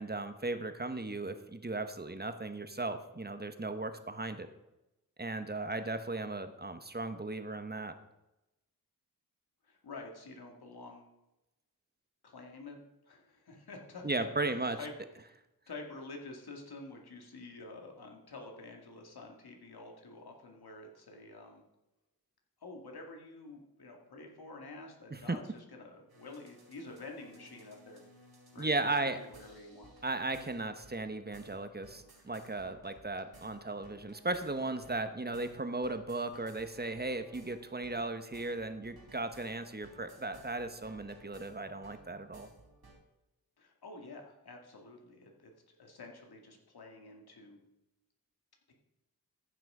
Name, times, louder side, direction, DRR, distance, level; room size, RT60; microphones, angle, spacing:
voice 1, 0.0-4.5 5.2-7.9 14.0-14.8 25.1-25.4 28.6-29.2 30.0-42.5, right 2 dB, 25° right, 9 dB, 1.1 m, -36 dB
voice 2, 9.6-11.1 12.2-12.8 13.1-14.9 15.2-15.3 15.7-21.6 22.6-28.0 28.5-29.9 43.6-47.6 48.7-48.8, left 3 dB, 90° left, 2 dB, 2.2 m, -49 dB
sound 1, 26.1-42.9, right 1 dB, 80° right, 3.9 m, -59 dB
14.5 x 6.0 x 5.0 m, 0.93 s
cardioid pair, 55°, 37 cm